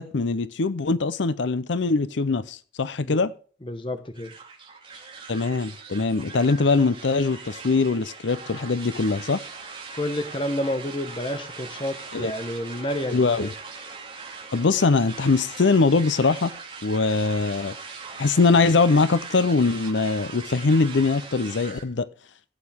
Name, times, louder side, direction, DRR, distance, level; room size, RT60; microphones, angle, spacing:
voice 1, 0.0-3.3 5.3-9.4 12.1-12.3 13.1-13.5 14.5-16.5 16.8-17.8 18.2-22.1, left 4 dB, 85° left, 0.6 m, -22 dB
voice 2, 3.6-4.3 9.9-13.5, left 1 dB, 25° left, 1.1 m, -30 dB
sound 1, 4.1-21.8, right 4 dB, 25° right, 2.4 m, -40 dB
16.5 x 8.5 x 3.6 m
head